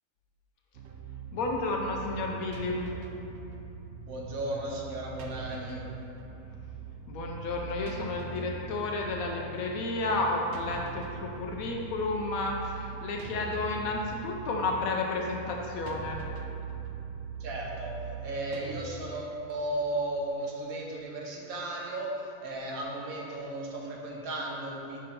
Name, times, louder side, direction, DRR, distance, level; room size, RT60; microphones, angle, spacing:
sound 1, 0.7-18.8, right 5 dB, 65° right, 0.8 m, -41 dB
voice 1, 1.3-2.9 7.1-16.2, left 2 dB, 80° left, 0 dB, 1.0 m, -32 dB
voice 2, 4.1-5.8 17.4-25.0, right 1 dB, 80° right, -2 dB, 1.4 m, -35 dB
5.2 x 4.2 x 5.1 m, 2.8 s
omnidirectional pair, 1.5 m